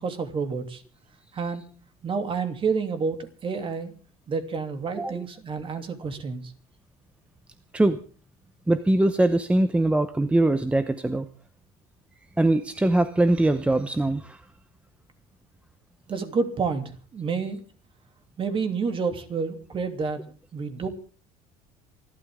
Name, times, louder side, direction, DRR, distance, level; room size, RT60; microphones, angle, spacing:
voice 1, 0.0-0.8 1.3-1.6 2.0-3.2 3.4-3.9 4.3-6.4 16.1-16.8 17.1-17.6 18.4-20.2 20.5-20.9, right 5 dB, 30° right, 7 dB, 2.9 m, -29 dB
voice 2, 8.7-11.3 12.4-14.4, right 2 dB, 5° right, 11 dB, 0.8 m, -22 dB
28.0 x 12.5 x 3.7 m, 0.39 s
cardioid pair, 125°, 16 cm